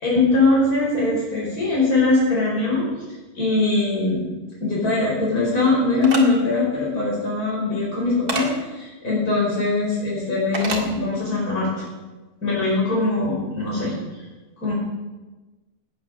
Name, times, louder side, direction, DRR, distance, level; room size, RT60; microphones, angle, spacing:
voice 1, 0.0-2.9 3.4-4.3 4.6-11.7 12.4-13.9 14.6-14.7, left 3 dB, 75° left, -5 dB, 5.3 m, -21 dB
sound 1, 6.0-6.2 8.3-8.5 10.5-10.9, right 3 dB, 85° right, 2.8 m, -26 dB
18.5 x 9.2 x 6.5 m, 1.2 s
omnidirectional pair, 1.6 m